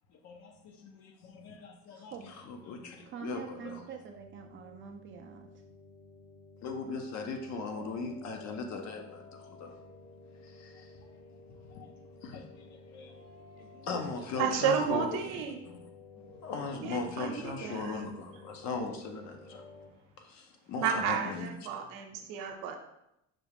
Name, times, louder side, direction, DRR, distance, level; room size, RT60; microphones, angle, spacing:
voice 1, 0.2-3.8 6.6-9.7 10.4-10.9 11.7-13.2 13.6-15.2 15.7-15.8 16.2-19.7 20.2-21.5, left 4 dB, 55° left, 4 dB, 0.8 m, -39 dB
sound 1, 2.1-19.9, left 2 dB, 70° left, 1.3 m, -54 dB
voice 2, 3.1-5.5 13.9-14.6, right 8 dB, 35° right, 3 dB, 0.4 m, -46 dB
voice 3, 14.4-15.6 16.8-18.1 20.8-22.8, right 7 dB, 70° right, 4 dB, 0.8 m, -32 dB
5.9 x 2.4 x 3.4 m, 0.83 s
cardioid pair, 125°, 34 cm